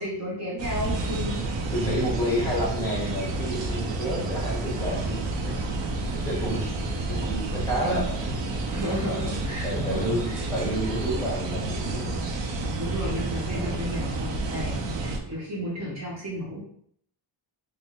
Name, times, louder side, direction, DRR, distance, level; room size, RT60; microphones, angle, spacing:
voice 1, 0.0-1.4 6.1-6.2 8.7-10.4 12.8-16.6, equal, 35° right, -5 dB, 1.0 m, -33 dB
sound 1, 0.6-15.2, right 2 dB, 75° right, 0.7 m, -30 dB
voice 2, 1.7-5.2 5.6-5.8 6.2-6.7 7.1-8.4 9.6-12.3 12.5-12.8 13.5-13.8 14.7-14.9, equal, 5° left, -5 dB, 1.3 m, -30 dB
4.1 x 2.1 x 3.4 m, 0.65 s
wide cardioid pair, 140°, 44 cm